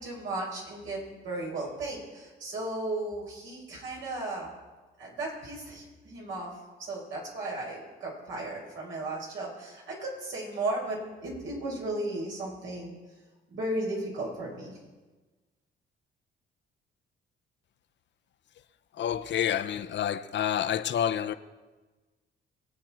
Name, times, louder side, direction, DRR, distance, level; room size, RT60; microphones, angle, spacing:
voice 1, 0.0-4.5 5.0-6.5 6.8-13.0 13.5-14.8, right 2 dB, 75° right, 5.8 m, -35 dB
voice 2, 19.0-21.3, left 9 dB, 65° left, 0.8 m, -28 dB
24.0 x 8.8 x 4.4 m
cardioid pair, 90°, 20 cm